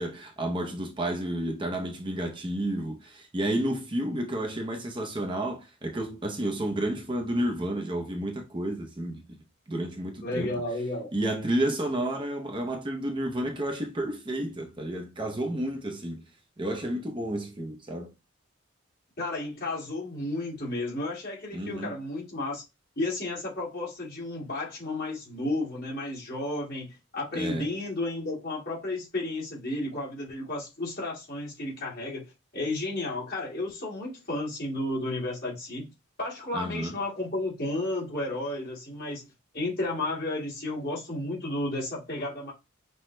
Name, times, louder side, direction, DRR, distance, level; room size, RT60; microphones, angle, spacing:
voice 1, 0.0-9.4 9.7-10.5 11.1-16.3 16.6-18.1 21.5-21.9 27.3-27.7 36.5-36.9, right 1 dB, 25° right, 0.6 m, -31 dB
voice 2, 10.2-11.1 19.2-22.6 23.0-32.2 32.5-35.9 36.2-39.2 39.5-42.5, left 2 dB, 45° left, 2.0 m, -32 dB
5.8 x 2.2 x 3.1 m
head